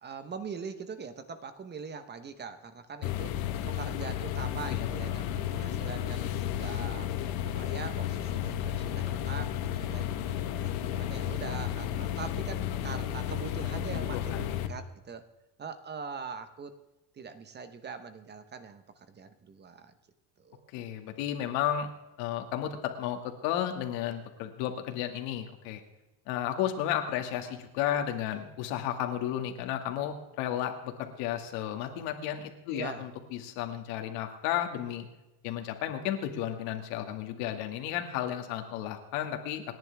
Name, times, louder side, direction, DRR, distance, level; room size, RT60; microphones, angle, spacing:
voice 1, 0.0-3.4 3.7-7.1 7.4-10.1 10.6-15.2 15.6-16.8 17.1-19.9 20.4-20.7 32.7-33.1, right 5 dB, 25° right, 10 dB, 1.0 m, -42 dB
sound 1, 3.0-14.7, left 11 dB, 55° left, 1.3 m, -33 dB
voice 2, 4.7-5.4 14.3-14.4 20.7-21.9 22.2-25.8 26.3-35.1 35.4-39.7, left 11 dB, 80° left, 4 dB, 2.2 m, -33 dB
28.5 x 10.5 x 3.5 m, 1.0 s
cardioid pair, 145°, 43 cm